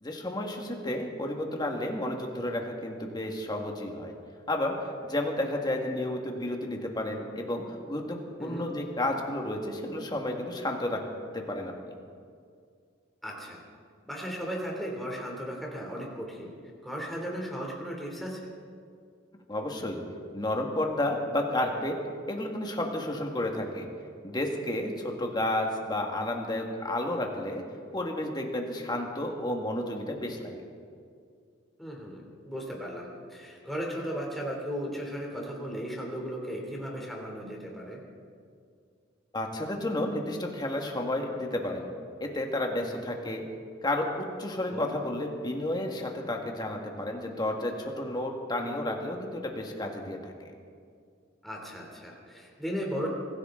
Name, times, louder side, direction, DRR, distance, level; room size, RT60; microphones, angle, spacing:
voice 1, 0.0-4.1 4.5-11.0 11.3-11.9 19.5-20.0 20.3-22.0 22.3-23.9 24.2-27.6 27.9-30.6 39.3-41.9 42.2-43.4 43.8-50.5, left 1 dB, 20° left, 2 dB, 1.9 m, -31 dB
voice 2, 13.2-13.6 14.1-16.5 16.8-18.4 31.8-38.0 44.7-44.9 51.4-53.1, equal, ahead, -2 dB, 3.2 m, -36 dB
24.5 x 15.5 x 3.9 m, 2.2 s
head